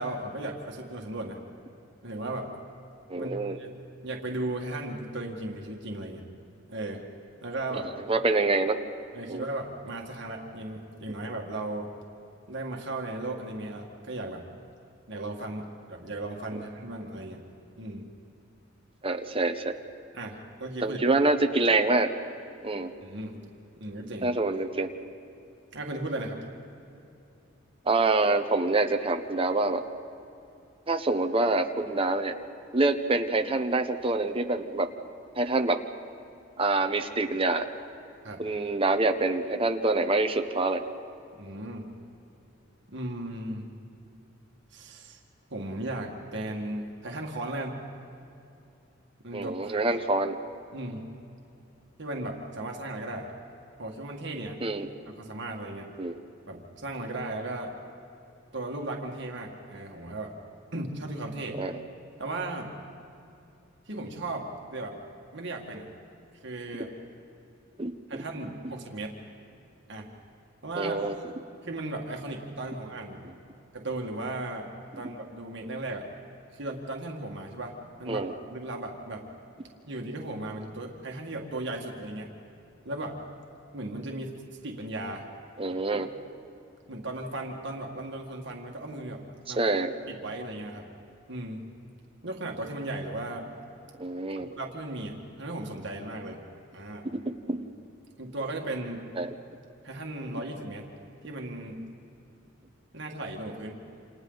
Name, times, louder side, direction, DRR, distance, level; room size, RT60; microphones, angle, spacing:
voice 1, 0.0-1.4 2.0-2.5 3.2-3.7 4.0-6.2 6.7-7.0 7.4-7.9 9.1-11.9 12.5-14.4 15.1-17.5 17.8-18.1 20.1-21.0 23.0-23.4 23.8-24.3 25.7-26.4 38.2-38.4 41.4-41.9 42.9-43.7 44.7-45.2 45.5-47.8 49.2-50.0 50.7-51.1 52.0-53.3 53.8-54.6 55.1-55.9 56.5-57.7 58.5-60.3 60.7-61.6 62.2-62.7 63.9-65.0 65.3-65.9 66.4-66.9 68.1-69.2 69.9-70.1 70.6-71.2 71.6-73.3 73.7-74.7 75.0-76.1 76.5-78.2 78.5-79.3 79.9-82.3 82.9-83.2 83.7-85.3 86.0-86.1 86.9-89.6 90.1-90.9 91.3-91.7 92.2-93.5 94.4-96.4 96.7-97.0 98.2-99.0 99.8-100.9 101.2-101.9 102.9-103.8, right 2 dB, 60° right, 0 dB, 2.0 m, -36 dB
voice 2, 3.1-3.6 8.1-8.8 9.3-9.4 19.0-19.8 20.8-22.1 22.6-22.9 24.2-24.9 27.9-29.8 30.9-32.4 32.7-34.9 35.4-35.8 36.6-37.7 38.4-40.8 49.3-50.3 54.6-54.9 56.0-56.1 61.6-61.8 67.8-68.2 70.8-71.2 78.1-78.3 85.6-86.1 89.6-89.9 94.0-94.5 97.5-97.6 99.2-99.3, right 2 dB, 30° right, 6 dB, 1.0 m, -26 dB
28.5 x 27.5 x 4.0 m, 2.8 s
head